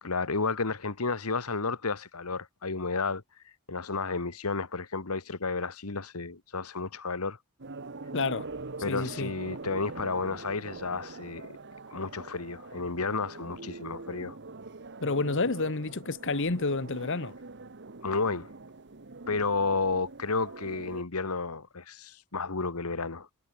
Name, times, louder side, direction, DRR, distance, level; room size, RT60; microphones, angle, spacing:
voice 1, 0.0-3.2 3.7-7.4 8.8-11.4 11.9-14.4 18.0-18.5 19.3-23.3, left 4 dB, 90° left, 1.6 m, -32 dB
sound 1, 7.6-21.0, right 3 dB, 55° right, 1.3 m, -43 dB
voice 2, 8.1-8.5 8.8-9.3 15.0-17.3, left 3 dB, 60° left, 1.4 m, -29 dB
head